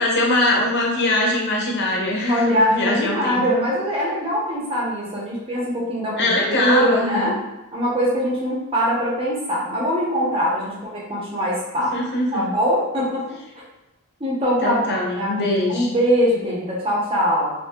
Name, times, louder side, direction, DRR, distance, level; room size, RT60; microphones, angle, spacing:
voice 1, 0.0-3.4 6.2-7.3 11.9-12.4 14.6-15.9, left 1 dB, 50° left, -2 dB, 0.7 m, -22 dB
voice 2, 2.2-7.4 7.7-11.9 12.3-13.2 14.2-14.8 15.2-17.5, equal, 25° right, -5 dB, 0.8 m, -22 dB
2.8 x 2.7 x 2.2 m, 0.99 s
head